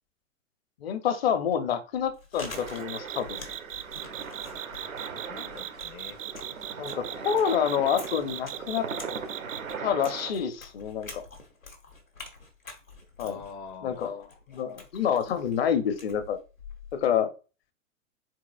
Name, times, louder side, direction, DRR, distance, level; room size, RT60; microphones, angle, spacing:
voice 1, 0.8-3.4 6.8-8.9 9.8-11.2 13.2-13.4 13.8-14.2 14.5-16.4 16.9-17.3, left 8 dB, 50° left, 0.8 m, -27 dB
Chewing mastication, 2.0-17.1, left 3 dB, 85° left, 1.5 m, -47 dB
sound 1, 2.4-10.3, right 5 dB, 85° right, 0.8 m, -39 dB
sound 2, 2.9-9.7, right 12 dB, 45° right, 0.4 m, -38 dB
voice 2, 4.8-6.2 13.2-14.1, left 5 dB, 15° left, 0.5 m, -45 dB
4.6 x 4.1 x 2.3 m
figure-of-eight pair, 105°, 40 cm